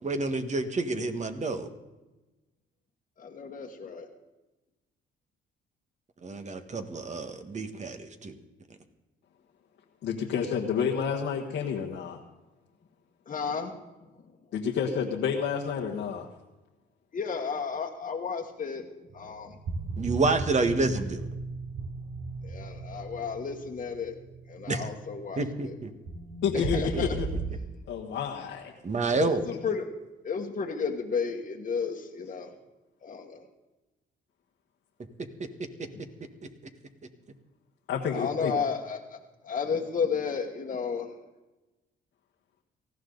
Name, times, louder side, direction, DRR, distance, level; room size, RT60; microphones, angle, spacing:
voice 1, 0.0-1.7 6.2-8.3 20.0-21.2 24.7-24.9 25.4-25.9 28.8-29.4, right 3 dB, 35° right, 7 dB, 1.6 m, -28 dB
voice 2, 3.2-4.1 13.3-13.8 17.1-18.9 19.1-19.6 22.4-24.1 24.5-25.8 26.5-27.2 29.1-29.8 30.2-32.5 33.0-33.4 35.9-36.1 38.1-39.2 39.4-41.1, left 6 dB, 40° left, 0 dB, 1.5 m, -32 dB
voice 3, 10.0-12.2 14.5-16.3 26.4-27.3 27.9-28.7 29.5-29.6 37.9-38.6, left 7 dB, 80° left, -2 dB, 1.5 m, -29 dB
sound 1, 19.1-27.5, right 3 dB, 75° right, 3.4 m, -37 dB
18.5 x 14.5 x 4.0 m, 1.1 s
cardioid pair, 90°, 20 cm